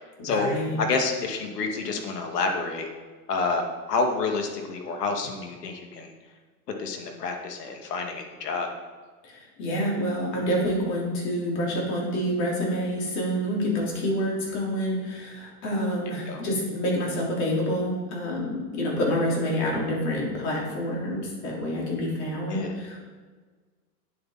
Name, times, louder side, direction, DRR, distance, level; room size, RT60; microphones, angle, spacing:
voice 1, 0.2-0.8 9.2-23.0, equal, 35° left, -3 dB, 3.3 m, -27 dB
voice 2, 0.8-2.9 3.3-6.1 6.8-8.7 16.3-16.4 22.5-22.7, left 4 dB, 85° left, 3 dB, 2.1 m, -28 dB
9.8 x 8.2 x 4.2 m, 1.4 s
supercardioid pair, 155°, 46 cm